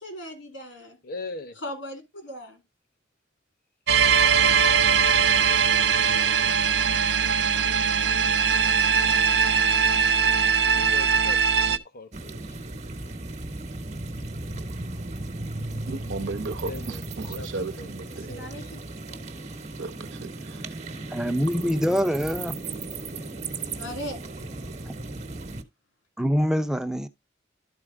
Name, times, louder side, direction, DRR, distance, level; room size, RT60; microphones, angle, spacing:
voice 1, 0.0-1.0 1.6-2.6 18.3-18.8 19.1-19.2 23.8-24.2, equal, 80° left, 2.6 m, -38 dB
voice 2, 1.0-1.5 10.6-12.4 16.6-17.0 17.4-17.9 18.3-18.5, left 3 dB, 50° left, 1.0 m, -39 dB
sound 1, 3.9-11.8, right 7 dB, 60° right, 0.6 m, -21 dB
sound 2, 12.1-25.6, right 2 dB, 40° right, 1.1 m, -36 dB
voice 3, 15.8-18.3 19.8-20.7 21.5-22.0, right 3 dB, 80° right, 0.9 m, -35 dB
voice 4, 21.1-22.6 24.8-24.9 26.2-27.1, equal, 5° right, 0.6 m, -24 dB
12.5 x 4.2 x 3.6 m
head